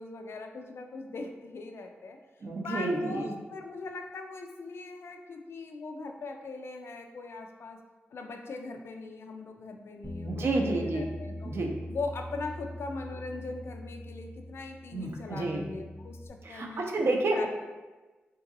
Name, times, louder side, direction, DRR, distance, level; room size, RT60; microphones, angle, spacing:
voice 1, 0.0-2.2 2.6-7.8 8.1-11.5 11.9-16.8 17.3-17.5, left 3 dB, 70° left, 4 dB, 0.3 m, -40 dB
voice 2, 2.4-3.3 10.2-11.1 11.4-11.7 14.9-15.7 16.4-17.5, right 2 dB, 65° right, 1 dB, 0.5 m, -30 dB
Bass guitar, 10.0-16.3, left 1 dB, ahead, 0.7 m, -42 dB
3.7 x 2.6 x 2.5 m, 1.2 s
cardioid pair, 55°, 4 cm